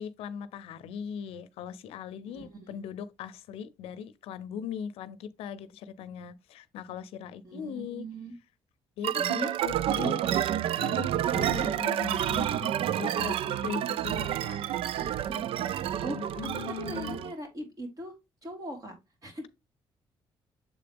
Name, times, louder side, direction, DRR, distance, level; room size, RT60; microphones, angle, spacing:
voice 1, 0.0-8.1 9.0-10.3 10.8-12.7 13.0-14.6 16.4-17.2, left 8 dB, 90° left, 0.6 m, -39 dB
voice 2, 2.3-2.8 7.4-8.3 9.0-9.5 11.5-11.7 15.0-15.6 16.0-18.1 18.4-18.9 19.2-19.4, right 1 dB, 40° right, 2.8 m, -40 dB
sound 1, 9.0-17.3, right 11 dB, 70° right, 0.4 m, -29 dB
7.3 x 3.8 x 3.5 m
cardioid pair, 85°, 10 cm